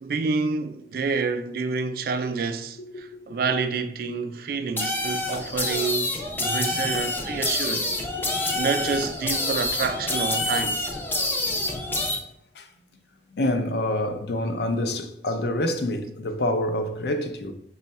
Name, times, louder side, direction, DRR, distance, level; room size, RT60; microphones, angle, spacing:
voice 1, 0.0-6.1 6.4-8.0 8.6-10.8, right 4 dB, 55° right, 0.3 m, -28 dB
voice 2, 2.8-3.4 7.6-8.7 11.4-12.0 12.5-12.7 13.3-17.5, left 1 dB, 65° left, 0.5 m, -28 dB
sound 1, 4.8-12.2, left 2 dB, 10° left, 0.5 m, -27 dB
5.3 x 2.3 x 4.1 m
head